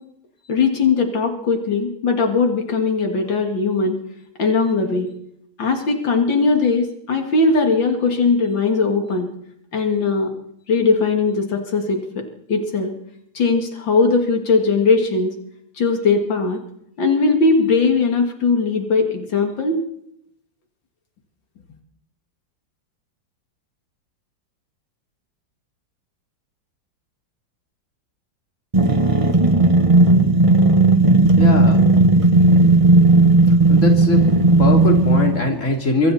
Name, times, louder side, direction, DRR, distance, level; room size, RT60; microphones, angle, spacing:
voice 1, 0.5-4.0 4.4-5.1 5.6-9.3 9.7-10.3 10.7-12.2 12.5-12.9 13.3-15.3 15.8-16.6 17.0-19.8, left 4 dB, 80° left, 3 dB, 3.0 m, -19 dB
sound 1, 28.7-35.5, right 2 dB, 20° right, 1.4 m, -14 dB
voice 2, 31.4-31.9 33.7-34.2 34.6-36.1, left 2 dB, 40° left, 2 dB, 3.8 m, -21 dB
26.5 x 24.5 x 4.3 m, 0.74 s
omnidirectional pair, 2.0 m